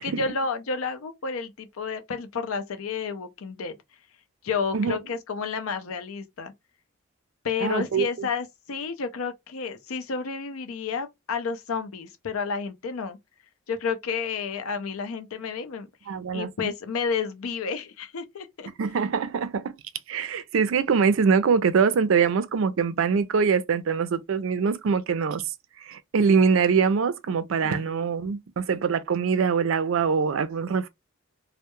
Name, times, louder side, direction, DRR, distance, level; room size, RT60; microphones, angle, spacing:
voice 1, 0.0-3.8 4.4-6.5 7.4-13.2 13.7-15.9 16.3-18.7 27.6-28.0, left 5 dB, 85° left, 0.5 m, -31 dB
voice 2, 7.6-8.3 16.1-16.5 18.8-19.7 20.1-25.4 25.8-30.9, right 5 dB, 65° right, 0.4 m, -23 dB
2.2 x 2.1 x 2.9 m
head